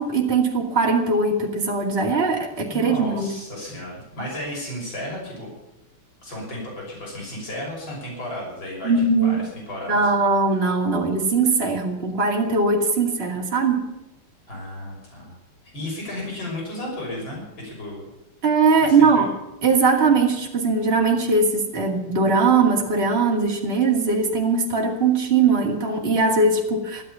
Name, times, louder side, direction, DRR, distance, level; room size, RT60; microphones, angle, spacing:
voice 1, 0.0-3.3 8.8-9.4 9.9-13.9 18.4-19.3 19.6-27.0, right 4 dB, 25° right, -1 dB, 2.6 m, -20 dB
voice 2, 2.6-5.5 6.2-8.9 9.2-10.0 14.5-15.4 15.7-18.0 18.8-19.3, left 1 dB, 60° left, -2 dB, 7.0 m, -33 dB
14.5 x 12.5 x 7.0 m, 0.91 s
omnidirectional pair, 2.4 m